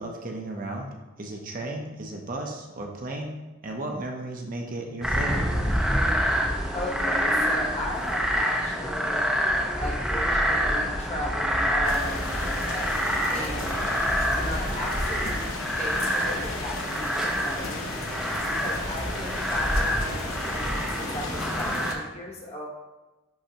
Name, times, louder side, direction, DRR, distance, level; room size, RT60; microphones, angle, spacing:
voice 1, 0.0-3.3 3.6-5.5, right 2 dB, 45° right, 1 dB, 0.7 m, -34 dB
sound 1, 5.0-21.9, equal, ahead, 0.7 m, -27 dB
voice 2, 6.7-9.3 9.7-13.0 13.3-13.8 14.4-15.5 15.8-17.9 18.6-22.7, left 1 dB, 30° left, -3 dB, 1.2 m, -36 dB
sound 2, 11.8-21.9, left 3 dB, 90° left, 0.8 m, -35 dB
10.5 x 3.5 x 2.9 m, 1.1 s
head